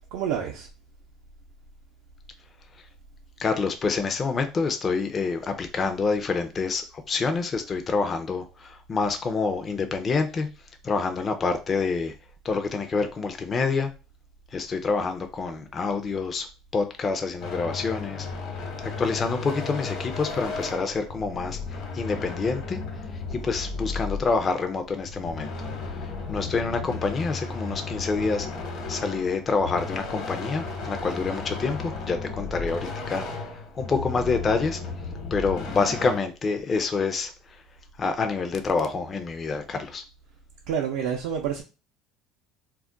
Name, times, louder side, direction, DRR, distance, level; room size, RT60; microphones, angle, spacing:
voice 1, 0.1-0.7 40.7-41.6, right 8 dB, 80° right, 0.4 m, -28 dB
voice 2, 3.4-10.5 10.8-12.1 12.4-13.9 14.5-16.5 16.7-18.3 18.8-21.6 21.9-22.8 23.1-25.5 26.3-33.3 33.8-34.8 35.3-37.3 38.0-40.0, left 4 dB, 30° left, 0.4 m, -27 dB
sound 1, 17.4-24.6 25.0-36.2, left 4 dB, 60° left, 0.9 m, -34 dB
2.3 x 2.1 x 3.7 m
cardioid pair, 125°, 0 cm